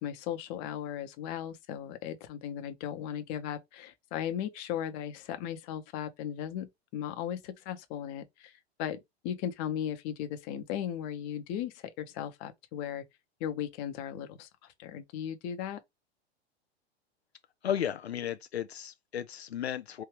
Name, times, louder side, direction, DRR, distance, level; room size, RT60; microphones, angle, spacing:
voice 1, 0.0-8.5 8.8-9.0 9.2-13.0 13.4-14.5 14.8-15.8, left 10 dB, 40° left, 0.9 m, -36 dB
voice 2, 17.6-20.0, left 9 dB, 80° left, 0.5 m, -34 dB
4.5 x 2.8 x 3.4 m
figure-of-eight pair, 95°, 32 cm